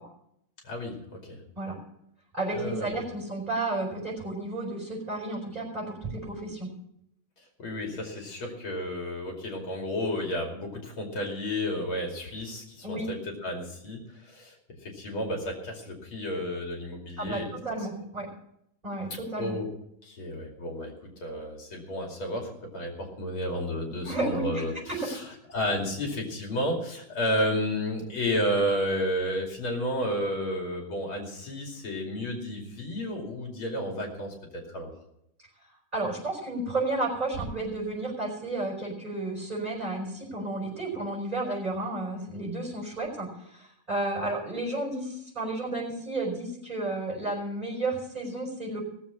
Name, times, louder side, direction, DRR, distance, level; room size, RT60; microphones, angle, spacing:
voice 1, 0.6-1.4 2.5-3.0 7.6-17.6 19.4-19.7 20.0-25.2 25.5-34.9, equal, 85° left, 1 dB, 3.5 m, -32 dB
voice 2, 2.3-6.7 12.8-13.1 17.2-18.3 18.8-19.6 24.0-25.4 35.9-48.8, right 2 dB, 15° right, -4 dB, 5.4 m, -32 dB
18.0 x 7.3 x 7.1 m, 0.77 s
omnidirectional pair, 2.2 m